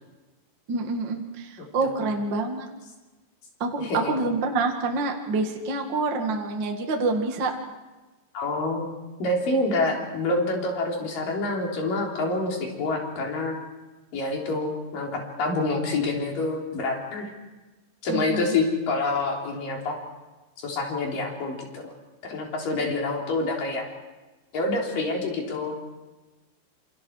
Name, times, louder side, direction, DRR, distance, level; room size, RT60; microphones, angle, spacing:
voice 1, 0.7-2.7 3.6-7.5 18.1-18.6, right 3 dB, 65° right, 2 dB, 1.1 m, -27 dB
voice 2, 1.6-2.0 3.8-4.1 8.3-8.9 9.2-13.6 14.1-17.3 18.0-20.0 20.6-21.9 22.2-23.9 24.5-25.7, left 2 dB, 45° left, 0 dB, 4.9 m, -27 dB
27.5 x 26.5 x 4.8 m, 1.2 s
omnidirectional pair, 5.7 m